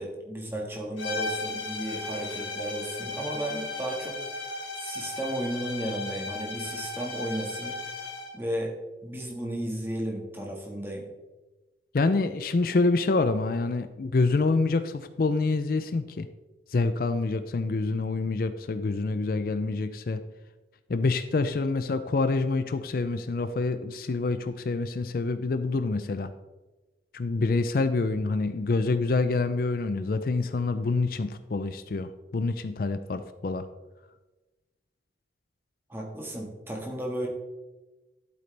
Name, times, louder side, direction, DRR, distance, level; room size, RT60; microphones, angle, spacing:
voice 1, 0.0-4.2 4.7-7.8 8.3-8.8 9.0-11.1 35.9-37.3, right 1 dB, 10° right, -1 dB, 1.6 m, -34 dB
sound 1, 1.0-8.4, left 2 dB, 90° left, 2.0 m, -36 dB
voice 2, 11.9-16.3 16.7-20.2 20.9-26.3 27.1-33.7, left 3 dB, 50° left, 11 dB, 0.4 m, -27 dB
11.0 x 8.2 x 3.3 m, 1.1 s
head